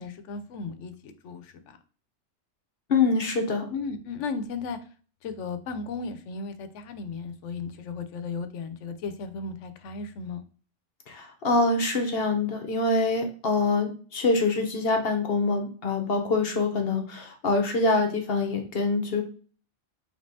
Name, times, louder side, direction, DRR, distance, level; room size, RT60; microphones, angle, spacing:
voice 1, 0.0-1.8 3.7-4.8 5.2-10.4, left 4 dB, 90° left, 9 dB, 0.9 m, -35 dB
voice 2, 2.9-3.7 11.1-19.2, left 3 dB, 55° left, 5 dB, 1.0 m, -25 dB
5.2 x 3.2 x 2.7 m, 0.42 s
omnidirectional pair, 1.2 m